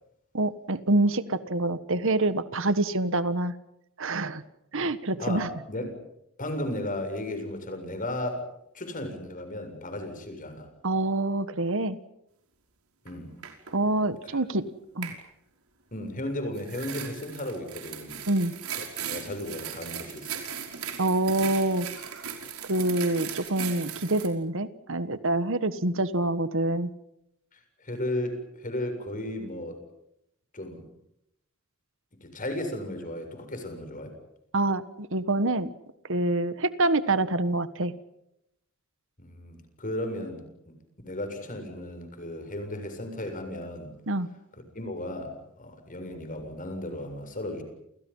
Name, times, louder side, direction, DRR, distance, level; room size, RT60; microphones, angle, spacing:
voice 1, 0.3-3.5 4.0-4.4 4.7-5.5 10.8-12.0 13.7-14.7 14.9-15.1 18.3-18.5 21.0-22.3 22.6-26.9 34.5-35.7 36.1-37.9 44.1-44.3, right 2 dB, 65° right, 13 dB, 1.5 m, -26 dB
voice 2, 5.2-6.0 6.4-8.5 8.7-10.7 13.0-13.3 14.2-14.4 15.9-18.2 18.7-20.5 27.5-29.8 30.5-30.9 32.2-34.1 39.2-40.8 41.0-43.9 44.7-47.6, left 1 dB, 40° left, 6 dB, 7.3 m, -35 dB
brushed hommel, 13.1-13.2 13.4-13.8 15.0-15.2 16.5-24.3, right 8 dB, 90° right, 5.5 m, -38 dB
29.5 x 29.5 x 5.6 m, 0.82 s
head